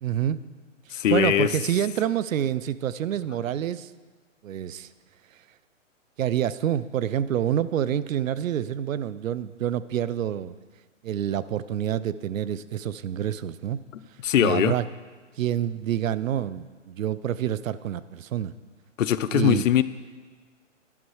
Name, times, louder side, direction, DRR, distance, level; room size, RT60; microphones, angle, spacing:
voice 1, 0.0-0.4 1.1-3.9 4.4-4.9 6.2-10.5 11.0-13.8 14.4-14.8 15.4-18.5 19.3-19.6, right 10 dB, 80° right, 16 dB, 0.5 m, -27 dB
voice 2, 0.9-1.5 14.2-14.7 19.0-19.8, left 10 dB, 75° left, 14 dB, 0.6 m, -21 dB
11.0 x 6.3 x 4.8 m, 1.4 s
hypercardioid pair, 165°, 39 cm